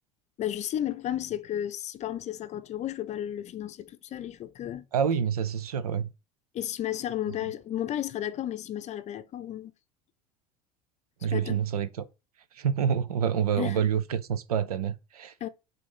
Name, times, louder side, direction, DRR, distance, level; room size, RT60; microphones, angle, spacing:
voice 1, 0.4-4.8 6.5-9.7 11.3-11.6 13.6-13.8 15.4-15.5, left 11 dB, 35° left, 0.6 m, -33 dB
voice 2, 4.9-6.1 11.2-12.0 12.5-15.3, right 8 dB, 75° right, 0.7 m, -27 dB
6.2 x 2.8 x 5.4 m
figure-of-eight pair, 75°, 19 cm